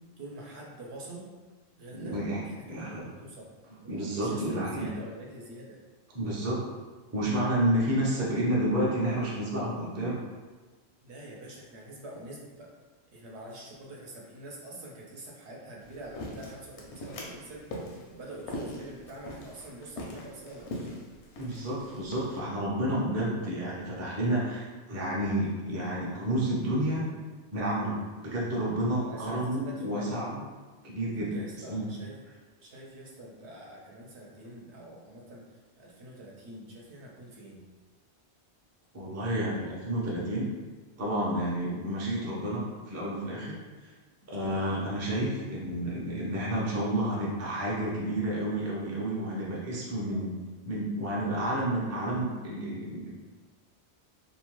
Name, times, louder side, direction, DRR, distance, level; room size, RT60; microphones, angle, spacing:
voice 1, 0.2-1.3 1.8-2.2 2.4-3.5 3.8-5.8 11.0-12.7 13.1-21.0 29.0-30.2 31.1-32.2 32.6-37.7 44.4-44.7 50.0-50.4, right 1 dB, 75° right, -3 dB, 0.9 m, -45 dB
voice 2, 1.9-2.4 2.7-3.0 3.9-4.9 6.1-6.6 7.1-10.2 21.4-27.1 27.5-27.9 28.2-30.4 30.8-31.3 31.6-31.9 38.9-40.5 41.0-43.6 44.3-50.3 50.6-53.1, right 1 dB, 25° right, -5 dB, 0.3 m, -30 dB
sound 1, 15.8-22.4, left 1 dB, 80° left, 0.9 m, -42 dB
2.7 x 2.1 x 3.0 m, 1.3 s
omnidirectional pair, 1.2 m